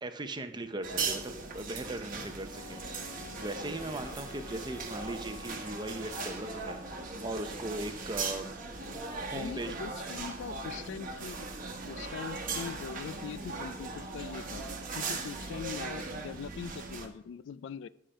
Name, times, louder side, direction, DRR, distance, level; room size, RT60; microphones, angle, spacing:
voice 1, 0.0-2.8 3.1-8.5 8.9-9.7, right 2 dB, 20° right, 8 dB, 0.6 m, -39 dB
sound 1, 0.8-17.1, right 4 dB, 45° right, 1.1 m, -39 dB
sound 2, 2.5-10.0, left 4 dB, 85° left, 1.2 m, -51 dB
voice 2, 9.3-11.5 11.9-14.7 14.9-17.9, left 7 dB, 65° left, 16 dB, 0.3 m, -42 dB
10.0 x 5.0 x 5.6 m, 0.80 s
head